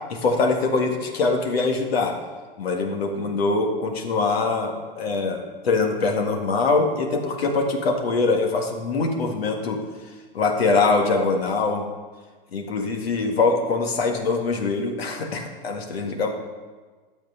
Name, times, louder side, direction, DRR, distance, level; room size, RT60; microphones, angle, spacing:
voice 1, 0.1-2.2 2.6-9.8 10.3-11.9 12.5-16.3, left 3 dB, 85° left, 2 dB, 1.9 m, -23 dB
12.0 x 7.3 x 5.6 m, 1.4 s
hypercardioid pair, 110°, 30 cm